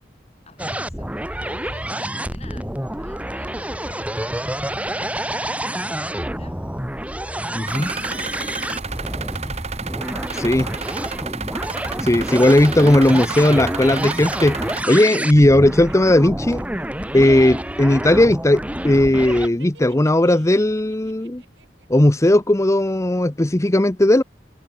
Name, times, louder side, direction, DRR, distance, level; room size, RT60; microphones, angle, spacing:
voice 1, 0.5-6.6 7.4-9.7, left 2 dB, 35° left, 8.0 m, -48 dB
sound 1, 0.6-19.5, right 1 dB, 10° right, 3.2 m, -28 dB
voice 2, 7.6-7.9 10.3-10.7 12.0-14.6 14.9-16.6 17.1-21.4 21.9-24.2, left 1 dB, 15° left, 0.8 m, -16 dB
sound 2, 7.7-14.8, right 5 dB, 40° right, 1.3 m, -31 dB
sound 3, 15.2-18.2 18.5-18.9 19.6-22.1 22.3-22.4, right 5 dB, 75° right, 7.7 m, -52 dB
head